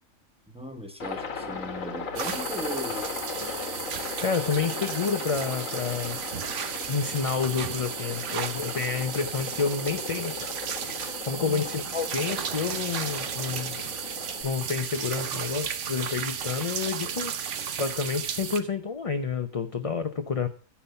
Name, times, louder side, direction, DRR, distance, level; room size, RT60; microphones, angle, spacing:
voice 1, 0.5-3.2 11.3-11.7, equal, 5° right, 5 dB, 1.3 m, -38 dB
Aircraft, 1.0-14.4, left 5 dB, 75° left, 1.8 m, -37 dB
sound 1, 2.2-18.6, right 8 dB, 65° right, 1.2 m, -34 dB
voice 2, 4.2-6.2 6.9-10.5 11.0-13.8 14.4-17.3 17.8-20.5, left 5 dB, 40° left, 8 dB, 0.5 m, -29 dB
10.0 x 7.2 x 6.8 m, 0.40 s
omnidirectional pair, 1.4 m